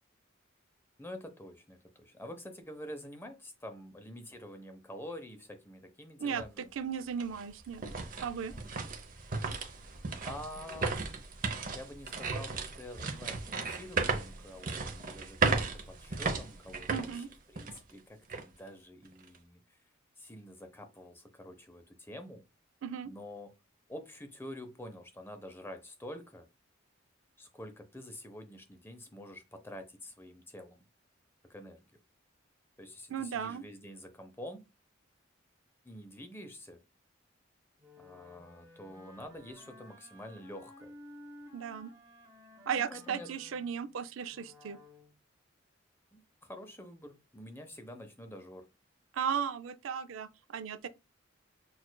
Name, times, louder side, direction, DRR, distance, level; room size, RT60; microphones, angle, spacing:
voice 1, 1.0-6.7 8.5-8.7 9.5-9.8 10.2-11.2 11.7-19.8 20.2-22.4 23.0-23.5 23.9-26.5 27.4-30.8 31.5-31.9 32.8-34.7 35.8-36.8 38.0-40.9 42.8-43.3 46.1-48.7, left 1 dB, 10° left, 0.6 m, -47 dB
sound 1, 6.4-6.5 7.0-17.9 18.3-18.4 19.0-19.4, right 4 dB, 40° right, 0.7 m, -35 dB
voice 2, 6.8-7.8 8.2-8.5 16.9-17.3 22.8-23.1 33.1-33.6 41.5-41.9 42.7-44.8 49.1-50.9, right 7 dB, 75° right, 0.4 m, -36 dB
Wind instrument woodwind instrument, 37.8-45.2, left 1 dB, 15° right, 1.0 m, -55 dB
6.3 x 2.4 x 2.2 m
head